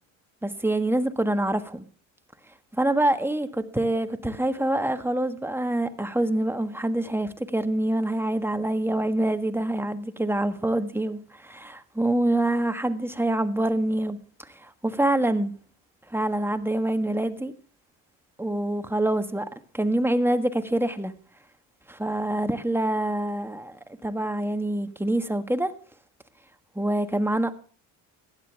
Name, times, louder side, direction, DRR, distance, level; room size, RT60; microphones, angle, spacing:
voice 1, 0.4-1.8 2.8-15.5 16.1-17.5 18.4-21.1 21.9-23.8 24.0-25.7 26.7-27.5, right 1 dB, 5° right, 1.5 m, -26 dB
16.5 x 11.0 x 3.5 m
supercardioid pair, 85°, 38 cm